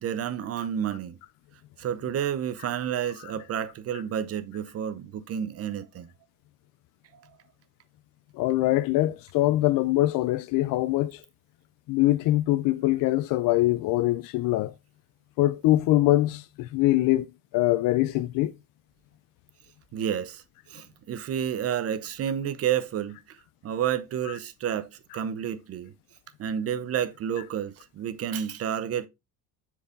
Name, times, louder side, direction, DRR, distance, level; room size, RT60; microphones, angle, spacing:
voice 1, 0.0-1.2 1.8-6.1 19.9-20.4 20.7-23.2 23.6-25.9 26.4-29.1, right 9 dB, 40° right, 0.7 m, -30 dB
voice 2, 8.4-11.2 11.9-14.7 15.4-17.3 17.5-18.5, left 16 dB, 60° left, 0.5 m, -23 dB
6.9 x 4.7 x 3.8 m
cardioid pair, 155°, 39 cm